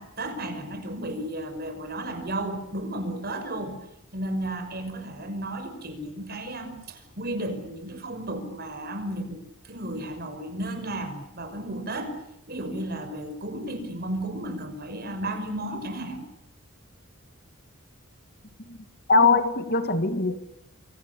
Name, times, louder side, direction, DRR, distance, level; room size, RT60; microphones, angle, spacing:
voice 1, 0.0-3.8 4.1-12.2 12.5-16.2, right 1 dB, 45° right, 8 dB, 5.7 m, -33 dB
voice 2, 19.1-20.4, left 3 dB, 45° left, 9 dB, 2.0 m, -21 dB
27.5 x 26.0 x 7.0 m, 0.79 s
head